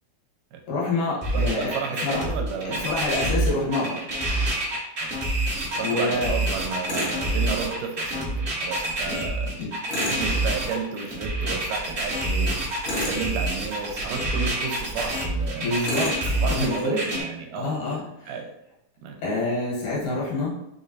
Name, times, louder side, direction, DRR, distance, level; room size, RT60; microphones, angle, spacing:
voice 1, 0.7-1.7 2.0-2.3 2.6-4.0 5.8-6.3 9.0-9.2 9.6-9.7 15.6-17.0 17.5-18.3 19.2-20.5, left 2 dB, 75° left, -4 dB, 2.7 m, -27 dB
sound 1, 1.2-17.2, right 1 dB, 65° right, 0.7 m, -27 dB
voice 2, 1.3-2.9 3.2-3.4 5.0-5.1 5.8-9.5 10.0-12.6 13.0-15.8 16.2-17.8 18.3-18.5 19.0-19.2, right 5 dB, 85° right, 3 dB, 2.2 m, -32 dB
Tools, 6.9-7.2 9.9-10.3 12.8-13.3 15.8-16.2, left 1 dB, 60° left, 1.4 m, -29 dB
5.4 x 3.1 x 2.6 m, 0.82 s
omnidirectional pair, 3.8 m